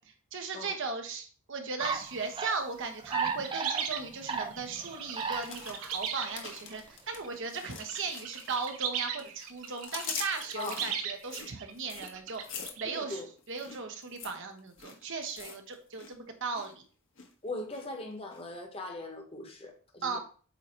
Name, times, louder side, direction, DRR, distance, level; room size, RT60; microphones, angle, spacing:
voice 1, 0.3-13.2 13.5-16.8 20.0-20.2, right 4 dB, 60° right, 1.1 m, -37 dB
sound 1, 1.8-2.6 3.0-5.7 6.0-6.5, right 5 dB, 25° right, 0.6 m, -35 dB
sound 2, 3.1-6.7 7.2-8.0 8.2-12.8, right 8 dB, 75° right, 0.8 m, -38 dB
sound 3, 5.1-8.9 9.2-16.1 16.4-16.7 17.2-17.8 18.3-18.4, left 6 dB, 60° left, 1.2 m, -44 dB
voice 2, 12.8-13.3 17.4-20.2, left 2 dB, 25° left, 1.1 m, -40 dB
8.3 x 2.8 x 4.4 m
head